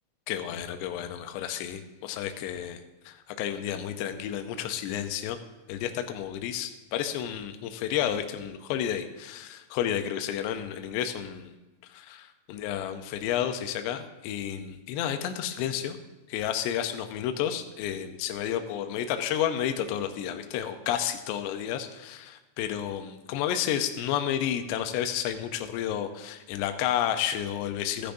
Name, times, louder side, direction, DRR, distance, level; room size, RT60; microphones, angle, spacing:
voice 1, 0.3-5.4 5.7-11.5 11.9-12.2 12.5-16.0 16.3-28.1, left 10 dB, 80° left, 7 dB, 2.8 m, -31 dB
15.5 x 10.0 x 2.6 m, 1.1 s
omnidirectional pair, 5.2 m